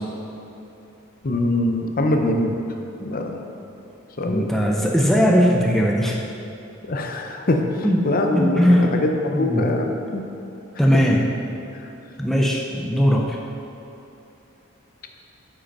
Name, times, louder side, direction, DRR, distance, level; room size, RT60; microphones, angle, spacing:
voice 1, 1.2-2.6 3.0-3.4 4.2-4.5 6.9-10.2, left 1 dB, 45° left, 3 dB, 0.6 m, -23 dB
voice 2, 4.3-6.2 7.8-8.1 8.3-8.9 9.3-9.7 10.8-11.2 12.2-13.4, equal, ahead, -2 dB, 0.5 m, -19 dB
8.5 x 5.2 x 5.3 m, 2.9 s
head